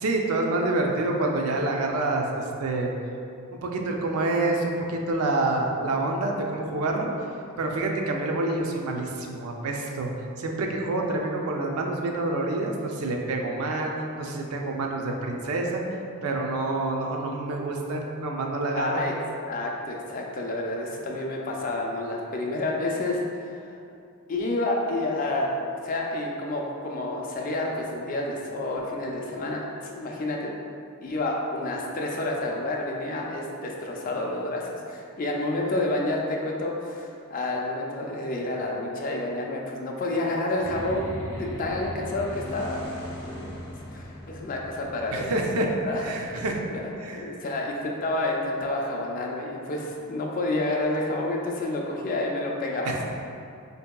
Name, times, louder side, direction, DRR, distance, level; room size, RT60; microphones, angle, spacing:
voice 1, 0.0-2.9 3.5-7.1 7.6-10.1 10.4-13.9 14.2-15.8 16.2-19.0 45.1-45.7 46.0-46.6 47.0-47.3 52.8-53.0, right 2 dB, 80° right, 1 dB, 0.4 m, -27 dB
voice 2, 18.8-19.1 19.4-23.7 24.3-25.5 25.8-30.5 31.0-42.8 43.2-43.6 43.9-45.3 45.6-46.3 46.7-53.0, left 2 dB, 40° left, 0 dB, 0.3 m, -29 dB
sound 1, 40.6-47.2, equal, 80° left, 0.6 m, -39 dB
4.3 x 2.7 x 2.2 m, 2.5 s
head